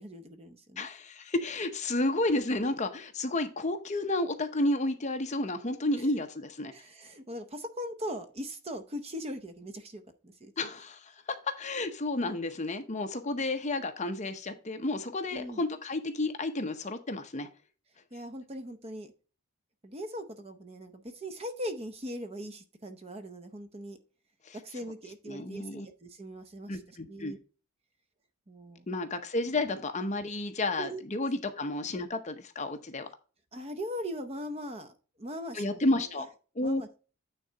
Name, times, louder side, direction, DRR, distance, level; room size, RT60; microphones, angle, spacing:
voice 1, 0.0-0.9 6.0-6.1 6.7-10.5 15.3-15.6 18.1-19.1 19.8-24.0 24.5-27.4 28.5-28.9 30.8-31.0 33.5-36.0 36.6-37.0, equal, 25° right, 8 dB, 0.7 m, -40 dB
voice 2, 0.8-6.7 10.6-17.5 24.5-24.6 25.3-25.9 26.7-27.4 28.9-33.1 35.5-36.3 36.6-36.8, left 2 dB, 30° left, 7 dB, 0.8 m, -31 dB
9.1 x 3.9 x 4.5 m, 0.36 s
head